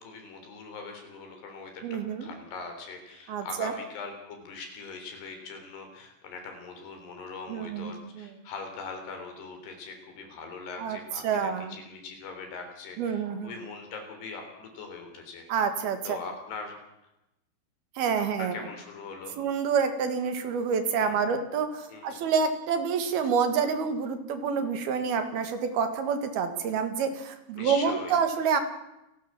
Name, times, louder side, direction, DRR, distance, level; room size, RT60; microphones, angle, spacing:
voice 1, 0.0-15.5 16.1-16.8 18.2-19.4 21.0-21.2 21.9-22.2 27.6-28.2, left 4 dB, 75° left, 4 dB, 5.8 m, -41 dB
voice 2, 1.8-2.3 3.3-3.7 7.5-7.9 8.2-8.3 10.8-11.0 11.2-11.7 13.0-13.5 15.5-16.2 18.0-18.6 19.4-28.6, right 6 dB, 70° right, 8 dB, 3.7 m, -28 dB
29.0 x 12.5 x 7.4 m, 0.90 s
omnidirectional pair, 4.8 m